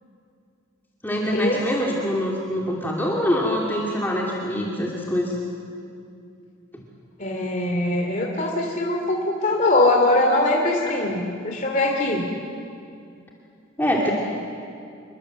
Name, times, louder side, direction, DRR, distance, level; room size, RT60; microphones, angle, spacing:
voice 1, 1.0-5.4 6.7-6.8 13.8-14.1, equal, 10° left, -3 dB, 2.6 m, -24 dB
voice 2, 7.2-12.2, left 2 dB, 40° left, -1 dB, 2.9 m, -22 dB
27.5 x 24.0 x 7.6 m, 2.4 s
head